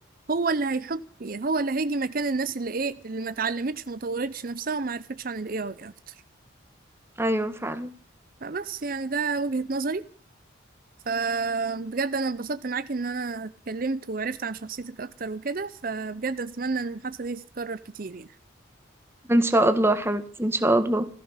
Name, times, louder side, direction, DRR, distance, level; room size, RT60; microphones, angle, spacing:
voice 1, 0.3-6.1 8.4-10.1 11.1-18.3, right 4 dB, 45° right, 0.7 m, -30 dB
voice 2, 7.2-7.9 19.3-21.1, right 1 dB, 15° right, 1.5 m, -23 dB
16.5 x 15.0 x 5.7 m
head